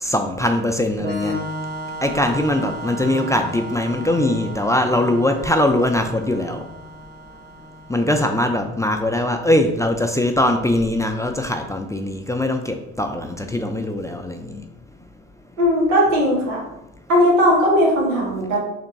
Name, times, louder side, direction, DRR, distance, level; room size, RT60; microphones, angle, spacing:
voice 1, 0.0-1.4 2.0-6.6 7.9-14.6, left 1 dB, 10° left, 5 dB, 0.4 m, -21 dB
Organ, 1.0-8.5, equal, 25° right, 0.9 m, -33 dB
voice 2, 15.6-16.6 17.1-18.6, equal, 90° right, -3 dB, 1.1 m, -17 dB
3.4 x 2.9 x 4.0 m, 0.87 s
hypercardioid pair, 50°, 40 cm